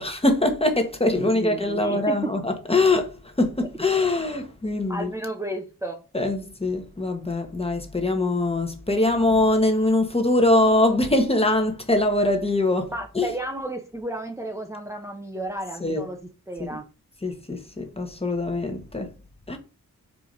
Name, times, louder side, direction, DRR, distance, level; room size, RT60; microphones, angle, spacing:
voice 1, 0.0-5.1 6.1-13.3 15.8-16.0 16.6-16.8 17.2-19.1 19.5-19.6, left 2 dB, 15° left, 1.3 m, -23 dB
voice 2, 1.1-2.2 4.9-6.0 12.9-16.2 16.5-16.8, right 1 dB, 10° right, 0.9 m, -32 dB
4.9 x 4.8 x 4.0 m
wide cardioid pair, 105°, 34 cm